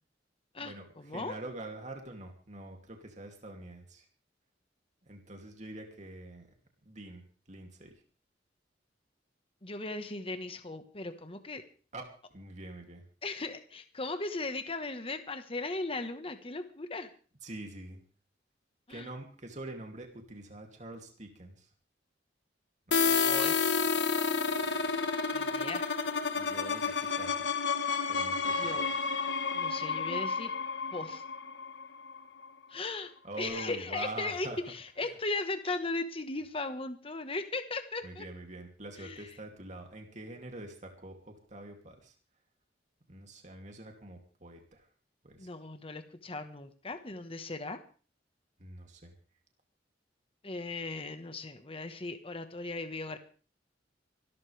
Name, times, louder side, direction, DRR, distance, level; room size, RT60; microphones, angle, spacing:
voice 1, 0.5-1.4 9.6-11.6 13.2-17.1 18.9-19.1 23.2-23.6 25.3-25.8 28.5-28.8 29.5-30.5 30.9-31.2 32.7-38.2 38.9-39.4 45.4-47.8 50.4-53.2, left 3 dB, 30° left, 8 dB, 1.4 m, -37 dB
voice 2, 1.1-4.0 5.1-6.5 6.9-7.2 7.5-7.9 11.9-12.1 12.3-13.0 17.4-18.0 18.9-21.7 22.9-23.2 26.4-27.3 28.1-28.9 33.2-34.6 38.0-42.1 43.1-44.6 45.2-45.5 48.6-49.1, right 2 dB, 40° right, 3 dB, 2.8 m, -45 dB
sound 1, 22.9-32.5, left 5 dB, 70° left, 1.4 m, -30 dB
25.5 x 13.0 x 3.5 m, 0.39 s
head